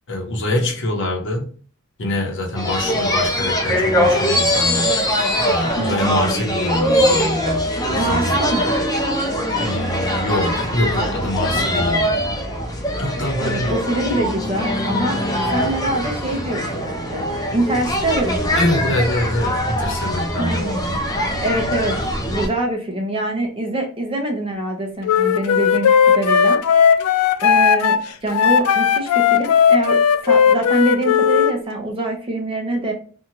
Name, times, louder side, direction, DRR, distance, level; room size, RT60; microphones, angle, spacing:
voice 1, 0.1-1.5 2.0-4.9 5.4-8.4 9.6-12.2 13.0-13.7 18.6-21.0, left 1 dB, 60° left, 0.8 m, -24 dB
sound 1, 2.5-22.5, equal, 15° left, 0.5 m, -22 dB
voice 2, 5.8-6.4 7.9-8.7 13.4-15.2 15.5-17.2 17.5-18.9 20.4-21.0 21.4-21.9 22.3-25.9 26.1-26.6 27.4-28.0 28.2-32.9, right 1 dB, 25° right, 0.7 m, -24 dB
Wind instrument woodwind instrument, 25.0-31.6, left 7 dB, 85° left, 0.3 m, -16 dB
2.7 x 2.3 x 2.9 m
head